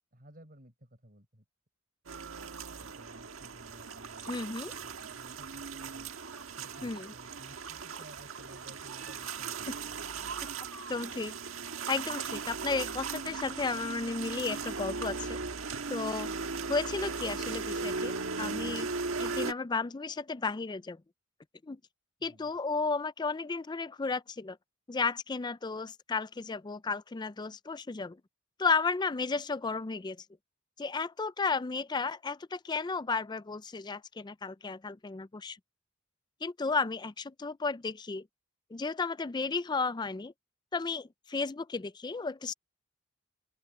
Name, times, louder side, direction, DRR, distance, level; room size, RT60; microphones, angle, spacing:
voice 1, 0.1-1.4 2.8-6.1 6.6-10.3 22.2-22.5, right 1 dB, 45° right, 6.3 m, -56 dB
sound 1, 2.1-19.5, right 4 dB, 85° right, 1.5 m, -38 dB
voice 2, 4.3-4.7 6.8-7.1 9.7-9.8 10.9-11.4 11.9-15.4 15.9-16.3 16.7-18.9 19.2-21.0 21.6-21.8 22.2-24.6 24.9-28.2 28.6-30.2 30.8-35.6 36.4-38.3 38.7-40.3 40.7-42.5, left 4 dB, 20° left, 0.4 m, -33 dB
open air
head